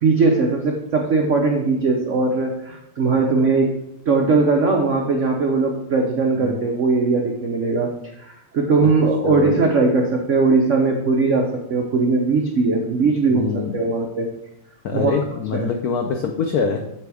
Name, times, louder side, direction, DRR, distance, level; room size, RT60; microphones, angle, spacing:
voice 1, 0.0-3.7 4.1-7.9 8.2-14.3 14.9-15.2 15.5-15.7, right 3 dB, 80° right, 1 dB, 0.6 m, -19 dB
voice 2, 9.2-9.6 13.0-13.8 14.8-16.8, left 5 dB, 90° left, 4 dB, 0.8 m, -25 dB
9.1 x 3.5 x 4.8 m, 0.79 s
omnidirectional pair, 2.4 m